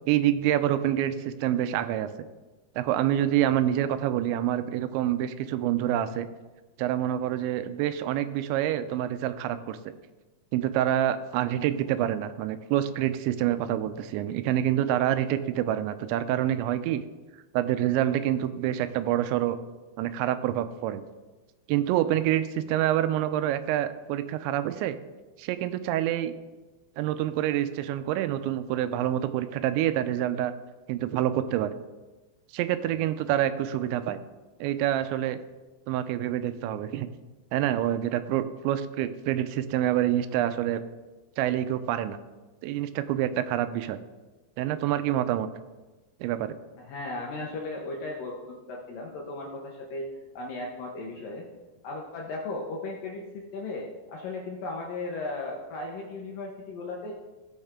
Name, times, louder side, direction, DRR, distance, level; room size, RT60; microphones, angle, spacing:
voice 1, 0.0-2.1 2.8-6.3 6.8-9.8 10.5-17.0 17.5-19.6 20.0-21.0 21.7-25.0 25.4-26.3 27.0-30.5 30.9-31.7 32.5-34.2 34.6-35.4 35.9-37.1 37.5-40.8 41.4-42.2 42.6-44.0 44.6-45.5 46.2-46.6, right 12 dB, 85° right, 11 dB, 2.9 m, -27 dB
voice 2, 46.8-50.1 50.4-51.5 51.8-57.1, left 2 dB, 70° left, -1 dB, 2.2 m, -36 dB
17.5 x 6.3 x 3.7 m, 1.2 s
omnidirectional pair, 5.2 m